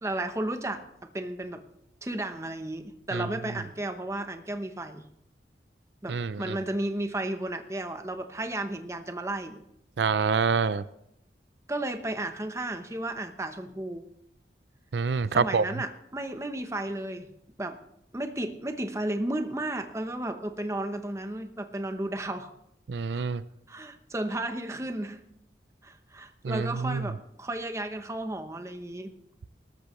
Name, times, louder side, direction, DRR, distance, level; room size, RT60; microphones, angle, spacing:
voice 1, 0.0-1.6 2.0-5.1 6.0-9.6 11.7-14.0 15.3-17.3 17.6-17.8 18.1-22.5 23.1-23.2 23.7-25.2 25.8-29.1, right 1 dB, 15° right, 7 dB, 0.9 m, -33 dB
voice 2, 6.1-6.6 10.0-10.8 14.9-15.7 22.9-23.4 26.4-27.0, right 5 dB, 80° right, 15 dB, 0.5 m, -26 dB
19.0 x 13.5 x 3.1 m, 0.76 s
head